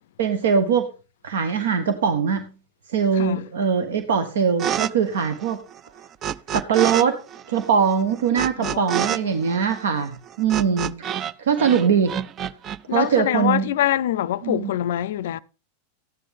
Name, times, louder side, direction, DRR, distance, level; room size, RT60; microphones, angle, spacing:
voice 1, 0.2-0.9 1.2-2.5 2.9-5.6 6.5-7.2 7.5-12.1 12.9-13.7 14.4-14.7, right 6 dB, 60° right, 1.2 m, -22 dB
voice 2, 3.1-3.5 8.6-9.0 9.2-9.3 12.9-15.4, left 12 dB, 55° left, 0.5 m, -24 dB
sound 1, 4.6-4.9 5.2-7.0 7.3-11.3 11.6-12.8, right 9 dB, 30° right, 0.5 m, -28 dB
14.0 x 9.9 x 3.6 m
figure-of-eight pair, 90°, 0 cm